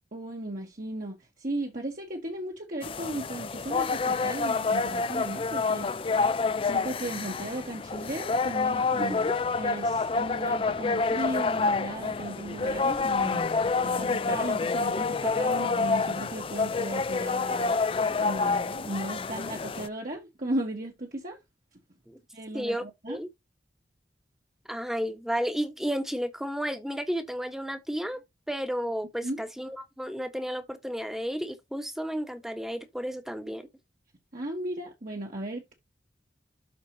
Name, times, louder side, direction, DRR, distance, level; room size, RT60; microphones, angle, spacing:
voice 1, 0.1-6.1 6.6-17.9 18.2-21.4 22.3-23.2 29.2-29.4 34.3-35.7, right 1 dB, 45° right, 1.5 m, -36 dB
sound 1, 2.8-19.9, left 4 dB, 30° left, 0.4 m, -28 dB
voice 2, 9.0-9.3 22.1-22.2 22.5-23.3 24.7-28.2 28.5-33.7, equal, ahead, 1.2 m, -32 dB
12.5 x 4.4 x 2.9 m
head